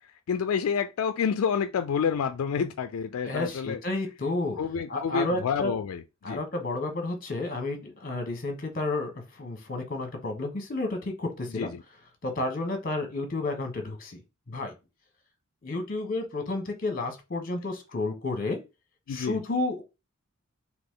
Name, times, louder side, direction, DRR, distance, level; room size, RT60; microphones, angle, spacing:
voice 1, 0.3-3.8 4.6-6.4 11.5-11.8 19.1-19.4, left 6 dB, 75° left, 0.3 m, -28 dB
voice 2, 3.2-4.6 4.9-5.7 6.2-9.1 9.4-11.7 12.2-14.2 14.5-14.7 15.6-18.6 19.1-19.8, left 2 dB, 40° left, 1.1 m, -31 dB
4.0 x 3.0 x 3.7 m
head